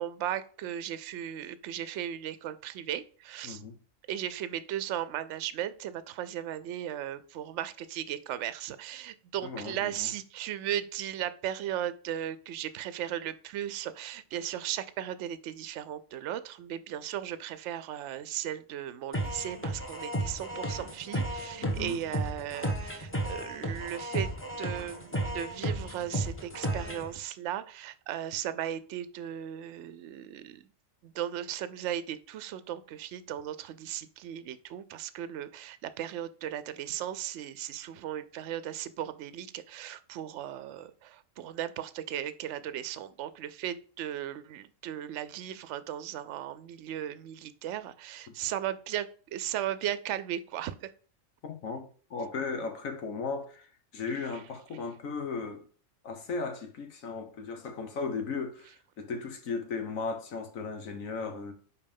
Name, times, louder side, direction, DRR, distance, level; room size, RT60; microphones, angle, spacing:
voice 1, 0.0-3.6 4.1-24.3 24.6-30.6 31.0-50.9 54.2-54.4, right 11 dB, 70° right, 0.9 m, -36 dB
voice 2, 3.4-3.8 9.4-10.1 21.6-22.0 51.4-55.6 56.0-61.5, left 4 dB, 90° left, 1.6 m, -36 dB
sound 1, 19.1-27.1, right 1 dB, 10° left, 1.0 m, -33 dB
5.4 x 4.6 x 5.3 m
omnidirectional pair, 1.4 m